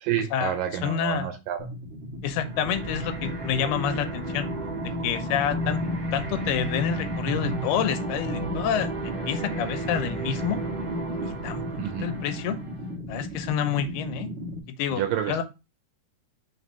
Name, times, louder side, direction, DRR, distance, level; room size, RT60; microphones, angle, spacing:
voice 1, 0.0-1.7 11.8-12.1 14.9-15.4, right 10 dB, 75° right, 2.1 m, -29 dB
voice 2, 0.8-1.3 2.2-4.5 5.0-5.8 6.1-10.6 11.2-11.6 12.0-12.6 13.1-14.3 14.8-15.4, left 8 dB, 80° left, 2.6 m, -28 dB
sound 1, 1.6-14.6, left 1 dB, 55° right, 0.7 m, -36 dB
sound 2, 2.4-12.9, right 2 dB, 20° right, 0.8 m, -33 dB
6.0 x 3.2 x 5.4 m
omnidirectional pair, 4.5 m